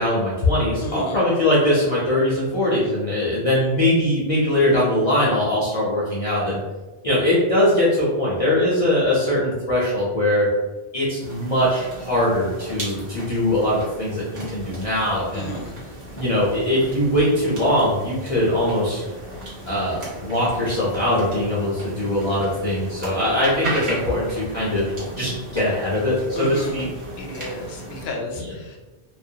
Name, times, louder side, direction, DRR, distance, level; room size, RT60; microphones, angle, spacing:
voice 1, 0.0-6.6 7.0-10.5 10.9-15.5 16.1-19.0 19.7-24.9 25.2-26.9, left 1 dB, 45° left, -8 dB, 0.5 m, -21 dB
voice 2, 0.8-1.2 15.3-15.8 26.3-26.8 27.2-28.8, left 1 dB, 70° left, 1 dB, 0.8 m, -32 dB
sound 1, 11.2-28.1, right 1 dB, 40° right, 0.9 m, -36 dB
2.3 x 2.2 x 2.7 m, 1.2 s
omnidirectional pair, 1.1 m